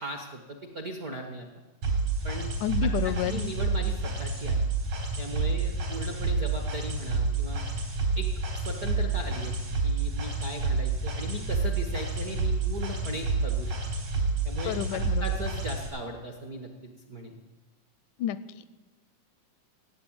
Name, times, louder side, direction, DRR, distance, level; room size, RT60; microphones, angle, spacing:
voice 1, 0.0-1.5 2.2-2.5 2.8-4.6 5.2-7.6 8.2-13.7 14.4-17.4, right 1 dB, 55° right, 4 dB, 1.0 m, -38 dB
sound 1, 1.8-15.9, right 3 dB, 80° right, 5.6 m, -29 dB
voice 2, 2.6-3.4 14.7-15.3 18.2-18.8, left 11 dB, 90° left, 16 dB, 2.1 m, -30 dB
16.5 x 8.7 x 8.7 m, 1.2 s
omnidirectional pair, 3.5 m